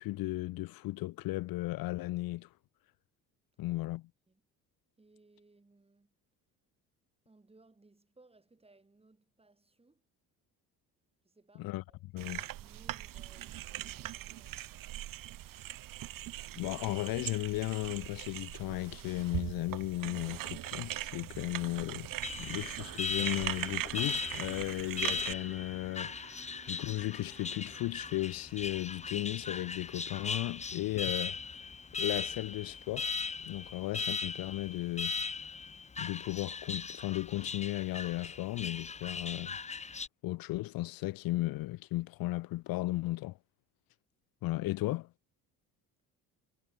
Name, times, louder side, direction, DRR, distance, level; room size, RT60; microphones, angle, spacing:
voice 1, 0.0-2.5 3.6-4.1 11.6-11.8 12.1-12.4 16.6-22.1 22.4-26.1 26.7-31.4 31.9-33.1 33.4-35.1 36.0-39.6 40.2-43.4 44.4-45.1, left 18 dB, 70° left, 0.8 m, -35 dB
voice 2, 5.0-6.1 7.2-10.1 11.2-11.8 12.1-14.7, right 2 dB, 15° right, 6.4 m, -63 dB
sound 1, 12.2-25.3, right 14 dB, 60° right, 1.6 m, -40 dB
Alarm, 22.2-40.1, left 5 dB, 20° left, 0.8 m, -39 dB
sound 2, 22.4-32.5 32.8-32.9, right 7 dB, 35° right, 1.1 m, -55 dB
cardioid pair, 90°, 36 cm